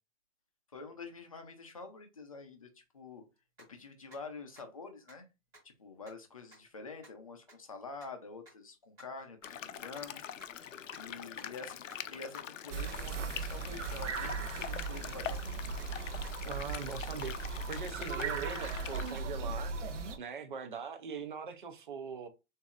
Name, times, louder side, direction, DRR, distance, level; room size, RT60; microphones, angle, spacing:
voice 1, 0.7-2.7 2.9-3.2 3.7-5.3 5.6-10.2 10.9-15.4, left 4 dB, 30° left, 0.5 m, -47 dB
sound 1, 3.6-3.7 4.1-4.2 4.6-4.7 5.1-5.2 5.5-5.6 6.1-6.2 6.5-6.6 7.0-7.1 7.5-7.6 8.0-8.1 8.5-8.6 9.0-9.1 9.4-9.5 9.9-10.0 10.4-10.5 10.9-11.0 11.4-11.5 11.9-12.0 12.3-12.4 12.9-13.0 13.3-13.4 13.8-13.9 14.3-14.4 14.8-14.9 15.3-15.4 15.8-15.9 16.2-16.3 16.8-16.9 17.2-17.3 17.7-17.8 18.2-18.3 18.7-18.8 19.2-19.3, right 1 dB, 10° right, 1.4 m, -55 dB
sound 2, 9.4-19.2, left 9 dB, 75° left, 0.6 m, -44 dB
sound 3, 12.7-20.2, right 4 dB, 65° right, 1.0 m, -38 dB
voice 2, 16.5-19.7 20.2-22.3, right 6 dB, 40° right, 0.6 m, -42 dB
6.8 x 2.7 x 2.4 m
hypercardioid pair, 175°, 39 cm